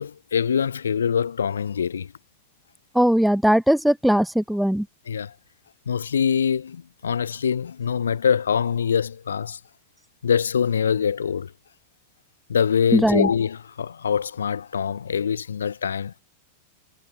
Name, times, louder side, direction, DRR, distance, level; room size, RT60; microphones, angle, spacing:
voice 1, 0.0-2.1 5.1-5.3 5.9-9.6 10.2-11.5 12.5-16.2, left 7 dB, 70° left, 3.6 m, -24 dB
voice 2, 2.9-4.8 12.9-13.3, equal, ahead, 1.1 m, -19 dB
figure-of-eight pair, 90°, 0 cm